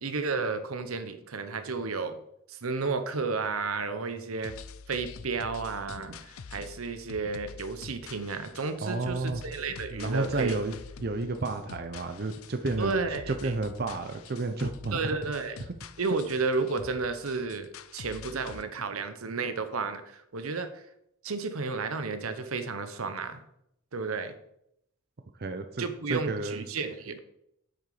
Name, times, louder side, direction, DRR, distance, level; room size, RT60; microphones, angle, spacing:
voice 1, 0.0-2.2 2.5-4.5 4.9-10.6 12.8-13.5 14.9-15.6 16.0-20.8 21.2-23.4 23.9-24.3 25.8-27.2, right 4 dB, 85° right, 9 dB, 0.9 m, -32 dB
sound 1, 4.4-18.6, left 5 dB, 85° left, 0.5 m, -46 dB
voice 2, 8.8-9.4 9.9-10.7 11.0-12.9 13.3-15.2 25.4-26.6, right 3 dB, 50° right, 7 dB, 0.7 m, -31 dB
8.0 x 6.8 x 4.9 m, 0.77 s
head